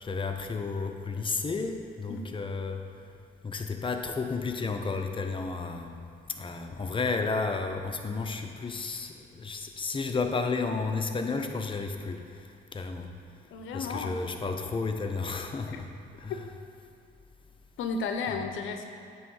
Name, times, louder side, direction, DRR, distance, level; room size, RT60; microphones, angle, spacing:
voice 1, 0.0-2.8 3.4-6.0 6.4-12.2 12.7-13.1 13.7-15.9 16.2-16.4, left 4 dB, 25° left, 5 dB, 0.7 m, -32 dB
voice 2, 13.5-14.2 16.3-16.4 17.8-18.9, left 4 dB, 80° left, 5 dB, 0.7 m, -33 dB
9.2 x 3.1 x 6.3 m, 2.6 s
cardioid pair, 90°, 20 cm